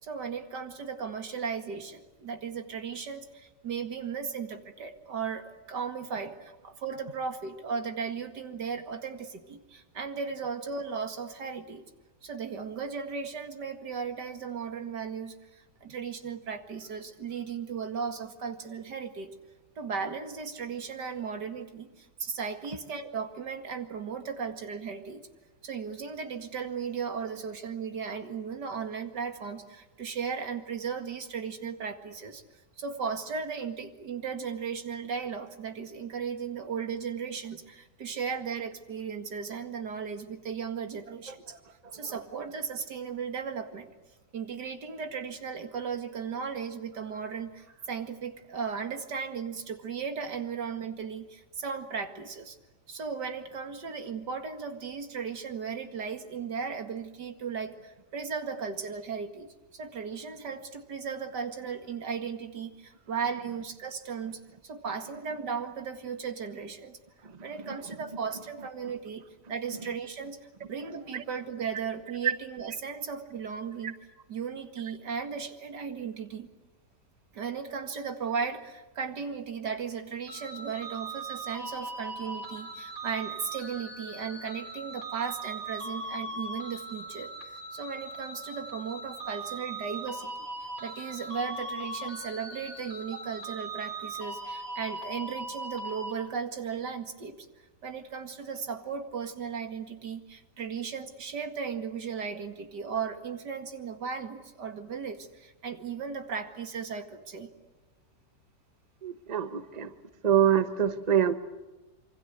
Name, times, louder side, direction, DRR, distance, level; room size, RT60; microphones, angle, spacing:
voice 1, 0.0-11.9 12.2-19.3 19.8-25.2 25.6-32.4 32.8-41.6 41.9-43.9 44.3-52.6 52.9-67.0 67.4-69.2 69.5-73.9 74.3-76.5 77.3-90.5 90.8-97.5 97.8-107.5, right 6 dB, 80° right, 6 dB, 2.6 m, -36 dB
voice 2, 41.3-42.2 67.2-67.7 71.1-71.2 72.2-72.3 109.0-109.9 110.2-111.3, right 9 dB, 25° right, 9 dB, 1.2 m, -27 dB
sound 1, 80.3-96.1, right 2 dB, 55° right, 4.0 m, -39 dB
26.5 x 25.0 x 8.1 m, 1.1 s
omnidirectional pair, 1.8 m